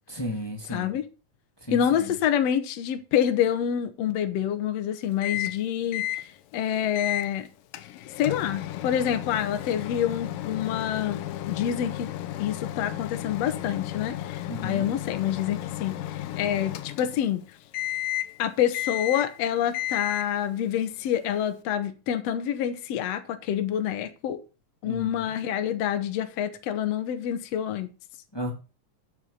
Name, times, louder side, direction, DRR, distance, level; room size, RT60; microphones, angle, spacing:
voice 1, 0.1-1.0 1.6-2.1 14.5-14.9 24.8-25.2 28.3-28.5, left 1 dB, 10° left, 1.4 m, -34 dB
voice 2, 0.7-1.0 1.7-7.5 8.2-12.1 12.4-17.4 18.4-24.4 24.8-27.9, left 9 dB, 60° left, 1.9 m, -27 dB
Microwave oven, 5.2-5.6 5.9-6.2 6.9-7.3 7.7-17.4 17.7-18.4 18.7-19.4 19.7-20.4, left 14 dB, 85° left, 2.5 m, -33 dB
8.9 x 8.2 x 5.4 m
omnidirectional pair, 3.9 m